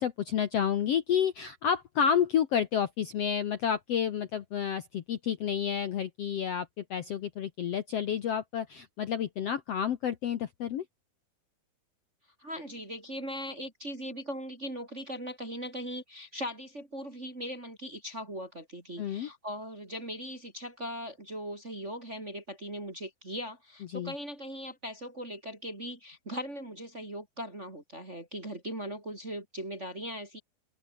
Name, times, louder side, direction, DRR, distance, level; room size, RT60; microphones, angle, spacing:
voice 1, 0.0-10.8 19.0-19.3 23.9-24.1, left 8 dB, 70° left, 1.5 m, -30 dB
voice 2, 12.4-30.4, equal, 20° right, 3.0 m, -39 dB
open air
omnidirectional pair, 4.4 m